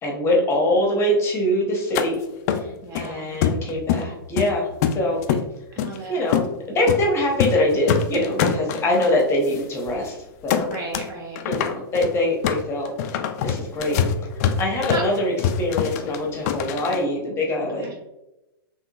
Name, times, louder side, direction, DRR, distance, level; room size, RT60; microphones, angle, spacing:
voice 1, 0.0-2.2 2.5-2.6 2.9-4.7 4.9-5.2 6.1-6.5 6.7-10.2 10.4-10.7 11.4-12.9 13.4-14.0 14.6-18.0, left 1 dB, 20° left, -1 dB, 0.8 m, -23 dB
sound 1, 1.9-2.1 2.5-3.1 3.4-4.1 4.4-5.4 5.8-6.0 6.3-6.5 6.9-7.0 7.3-7.6 7.9-9.1 9.5-9.6 9.9-10.1 10.5-11.1 11.4-17.0, left 8 dB, 40° left, 0.3 m, -24 dB
voice 2, 2.8-3.3 5.8-6.2 10.7-11.4 14.9-15.0 17.8-17.9, right 3 dB, 25° right, -1 dB, 0.7 m, -33 dB
3.8 x 3.0 x 2.3 m, 0.93 s
hypercardioid pair, 110°, 13 cm